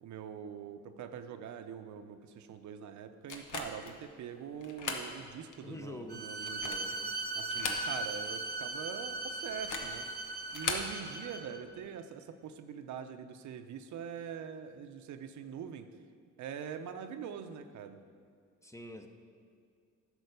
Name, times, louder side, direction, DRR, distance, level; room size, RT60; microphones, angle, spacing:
voice 1, 0.0-6.9 7.3-10.1 10.5-15.9 16.4-18.0, right 8 dB, 70° right, 8 dB, 0.7 m, -43 dB
sound 1, 3.3-4.0 4.6-5.1 5.5-5.6 6.3-6.9 7.4-8.2 8.5-8.6 9.5-10.0 10.5-10.9, left 5 dB, 85° left, 1.0 m, -38 dB
voice 2, 5.6-6.3 6.7-7.1 18.6-19.1, left 1 dB, 10° left, 5 dB, 0.7 m, -46 dB
Bowed string instrument, 6.1-11.6, right 2 dB, 30° right, 0.8 m, -38 dB
11.0 x 4.5 x 6.7 m, 2.2 s
cardioid pair, 90°, 30 cm